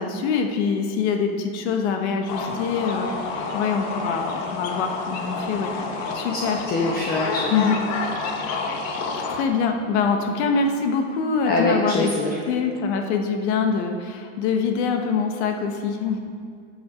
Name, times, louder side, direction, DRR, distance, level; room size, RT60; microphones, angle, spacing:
voice 1, 0.0-5.7 6.1-6.6 7.5-7.8 9.3-12.1 12.5-16.2, left 5 dB, 65° left, 4 dB, 1.3 m, -24 dB
sound 1, 2.3-9.4, left 4 dB, 45° left, 1.4 m, -29 dB
voice 2, 6.0-6.4 6.7-7.5 11.5-12.4, left 2 dB, 25° left, -2 dB, 1.2 m, -24 dB
14.0 x 7.0 x 5.1 m, 2.2 s
supercardioid pair, 145°, 37 cm